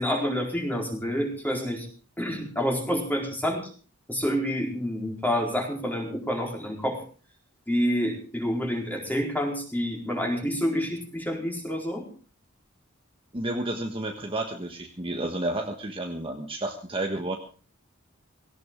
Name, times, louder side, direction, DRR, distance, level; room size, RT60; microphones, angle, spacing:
voice 1, 0.0-1.9 2.2-3.7 4.1-7.0 7.7-12.0, equal, 10° left, 0 dB, 4.4 m, -28 dB
voice 2, 13.3-17.4, right 1 dB, 25° right, 3 dB, 1.4 m, -31 dB
17.5 x 17.5 x 3.8 m, 0.39 s
head